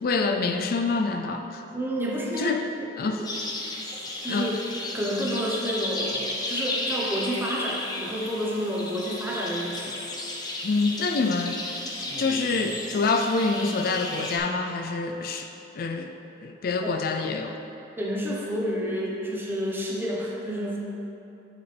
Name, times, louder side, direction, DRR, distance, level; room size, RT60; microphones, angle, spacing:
voice 1, 0.0-1.6 2.4-2.7 3.0-3.2 4.3-4.6 10.6-11.7 12.0-15.5 15.7-16.1 16.4-17.5, left 3 dB, 55° left, 5 dB, 0.4 m, -26 dB
voice 2, 1.7-2.9 4.2-4.6 4.9-10.0 16.8-16.9 18.0-20.8, equal, 10° right, -4 dB, 0.9 m, -29 dB
sound 1, 3.2-14.4, left 2 dB, 20° left, 0.8 m, -33 dB
9.5 x 4.9 x 3.3 m, 2.9 s
head